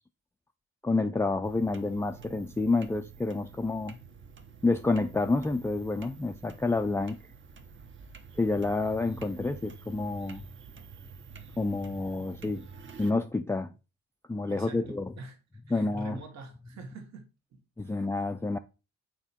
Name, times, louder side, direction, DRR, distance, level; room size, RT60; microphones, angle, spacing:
voice 1, 0.8-4.0 4.6-7.2 8.4-10.4 11.6-12.7 13.0-13.7 14.3-15.1 15.7-16.2 17.8-18.6, left 3 dB, 10° left, 0.4 m, -29 dB
sound 1, 1.4-13.1, right 5 dB, 40° right, 0.9 m, -48 dB
voice 2, 14.5-15.4 15.7-18.1, right 2 dB, 65° right, 1.4 m, -45 dB
6.0 x 4.4 x 4.2 m
cardioid pair, 90°, 30 cm